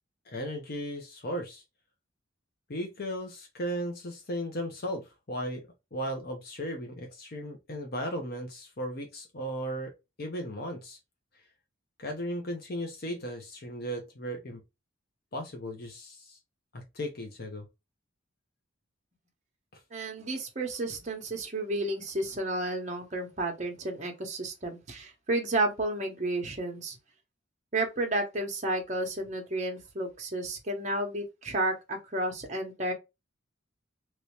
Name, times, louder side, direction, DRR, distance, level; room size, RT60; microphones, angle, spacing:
voice 1, 0.3-1.6 2.7-9.9 10.2-11.0 12.0-14.6 15.3-16.4 16.7-17.7, equal, 50° left, 0.7 m, -36 dB
voice 2, 19.9-27.0 27.7-32.9, right 2 dB, 35° right, 0.9 m, -32 dB
3.0 x 2.8 x 3.1 m
head